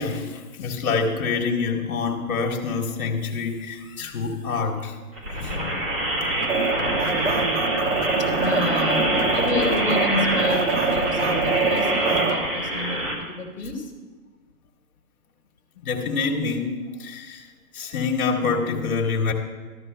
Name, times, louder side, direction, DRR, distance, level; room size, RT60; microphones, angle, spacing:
voice 1, 0.0-5.0 5.3-5.9 8.8-8.9 9.7-9.8 12.1-12.2 13.6-13.7 15.8-17.5 17.7-19.3, left 4 dB, 60° left, 1 dB, 1.6 m, -26 dB
sound 1, 5.2-13.1, right 1 dB, 35° right, 1.9 m, -26 dB
sound 2, 6.4-12.3, right 4 dB, 50° right, 0.9 m, -24 dB
voice 2, 8.4-13.0 13.3-13.9, left 3 dB, 5° right, -11 dB, 1.3 m, -29 dB
14.0 x 12.5 x 2.2 m, 1.4 s
hypercardioid pair, 175°, 47 cm